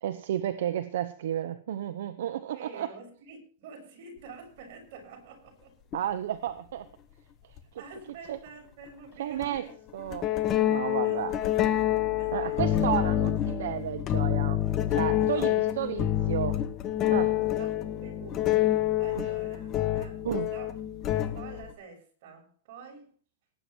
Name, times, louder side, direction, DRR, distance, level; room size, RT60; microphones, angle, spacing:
voice 1, 0.0-2.9 5.9-6.9 8.3-8.4 9.2-9.7 9.9-10.3 10.7-11.3 12.3-14.6 14.9-16.5 17.1-17.3 20.2-20.5, right 11 dB, 70° right, 10 dB, 1.1 m, -32 dB
voice 2, 2.5-5.8 7.7-9.8 11.0-11.8 12.2-12.8 15.2-16.3 17.4-20.8 21.3-23.1, right 4 dB, 50° right, 3 dB, 7.0 m, -48 dB
sound 1, 5.9-6.0 7.6-7.7 9.4-9.6 10.1-21.7, left 12 dB, 25° left, 1.2 m, -27 dB
19.0 x 9.8 x 4.6 m, 0.41 s
supercardioid pair, 170°, 0 cm